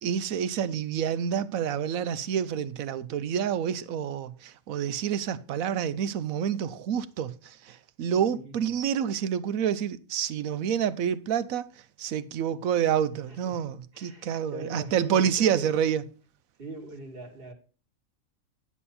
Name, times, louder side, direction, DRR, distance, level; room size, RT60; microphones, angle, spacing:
voice 1, 0.0-11.6 12.0-16.0, right 8 dB, 90° right, 1.1 m, -28 dB
voice 2, 8.1-8.5 13.3-13.6 13.9-15.7 16.6-17.5, right 1 dB, 45° right, 2.0 m, -41 dB
10.0 x 7.2 x 4.2 m
omnidirectional pair, 1.4 m